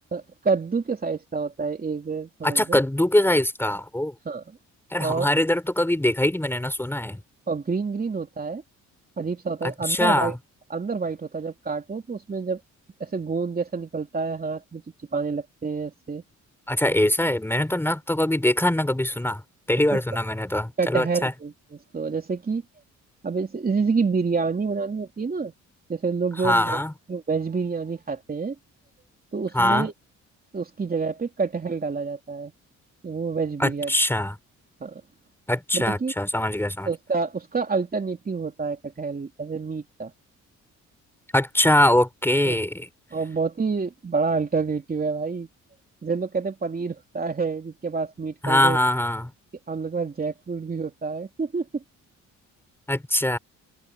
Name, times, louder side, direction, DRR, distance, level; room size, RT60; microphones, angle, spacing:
voice 1, 0.1-2.8 4.2-4.4 5.0-5.3 7.5-8.6 9.2-10.3 10.7-12.6 13.0-14.8 15.1-16.2 19.9-20.0 20.8-22.6 23.2-25.5 25.9-26.8 27.1-28.5 29.3-29.9 30.5-32.5 33.0-33.9 34.8-35.0 35.7-36.1 36.9-40.1 42.4-42.5 43.1-45.5 46.0-48.8 49.7-51.8, right 4 dB, 30° right, 3.1 m, -28 dB
voice 2, 2.4-4.1 4.9-7.2 9.6-10.3 16.7-19.4 19.7-21.3 26.4-26.9 29.5-29.9 33.6-34.4 35.5-36.9 41.3-42.9 48.4-49.3 52.9-53.4, left 1 dB, 10° left, 4.1 m, -22 dB
cardioid pair, 90°, 30 cm